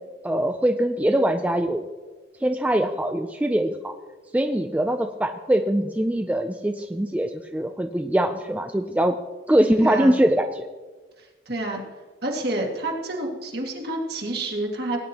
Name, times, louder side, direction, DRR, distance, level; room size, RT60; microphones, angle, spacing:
voice 1, 0.2-1.8 2.4-3.9 4.3-9.2 9.5-10.7, right 1 dB, 10° right, 6 dB, 0.4 m, -22 dB
voice 2, 9.8-10.1 11.2-11.8 12.2-15.0, right 1 dB, 60° right, 0 dB, 2.0 m, -29 dB
18.0 x 9.5 x 2.9 m, 1.3 s
head